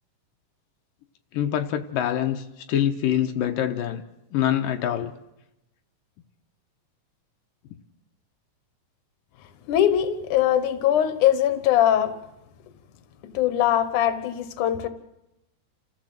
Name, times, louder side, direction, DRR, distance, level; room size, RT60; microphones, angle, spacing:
voice 1, 1.3-4.0 4.3-5.1, left 10 dB, 85° left, 5 dB, 2.7 m, -25 dB
voice 2, 9.7-12.1 13.3-14.9, left 11 dB, 70° left, 11 dB, 2.6 m, -21 dB
29.0 x 15.0 x 7.9 m, 0.89 s
omnidirectional pair, 3.9 m